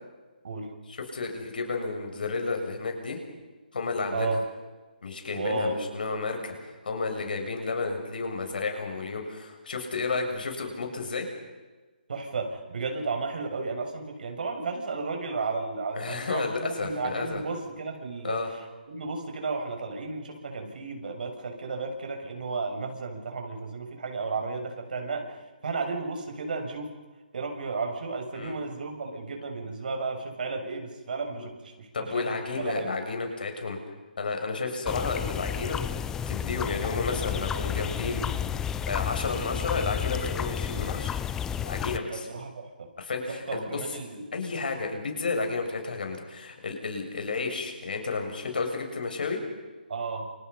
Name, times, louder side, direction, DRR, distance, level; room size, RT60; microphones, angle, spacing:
voice 1, 0.9-3.2 3.7-4.3 5.0-11.3 16.0-17.4 18.2-18.5 28.3-28.5 31.3-31.5 31.9-33.8 34.2-38.2 38.9-41.2 41.6-42.3 43.0-43.8 44.3-49.4, left 4 dB, 65° left, 4 dB, 7.4 m, -32 dB
voice 2, 5.3-5.9 12.1-25.3 25.6-26.9 27.3-32.9 42.1-42.9 43.3-44.3 49.9-50.3, right 3 dB, 60° right, 4 dB, 7.1 m, -33 dB
sound 1, 34.9-42.0, left 8 dB, 10° left, 0.8 m, -31 dB
29.0 x 28.0 x 5.7 m, 1.3 s
figure-of-eight pair, 150°, 5 cm